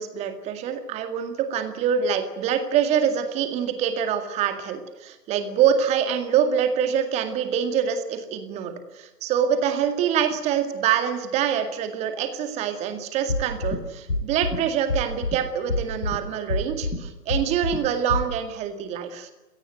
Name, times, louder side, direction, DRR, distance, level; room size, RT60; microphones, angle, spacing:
voice 1, 0.0-19.3, right 8 dB, 15° right, 8 dB, 2.0 m, -25 dB
sound 1, 13.3-13.8 14.1-14.6 14.9-15.4 15.7-16.2 16.5-17.0 17.3-17.8 18.1-18.2, left 2 dB, 75° left, 6.6 m, -25 dB
29.5 x 17.5 x 9.3 m, 1.1 s
figure-of-eight pair, 135°, 48 cm